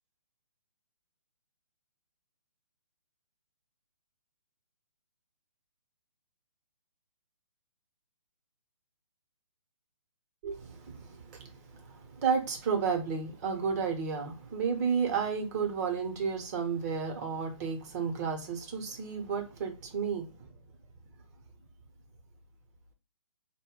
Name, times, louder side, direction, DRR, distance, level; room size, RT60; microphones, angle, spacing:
voice 1, 10.4-20.3, right 6 dB, 30° right, 0.9 m, -32 dB
4.3 x 2.2 x 3.6 m
figure-of-eight pair, 130°, 17 cm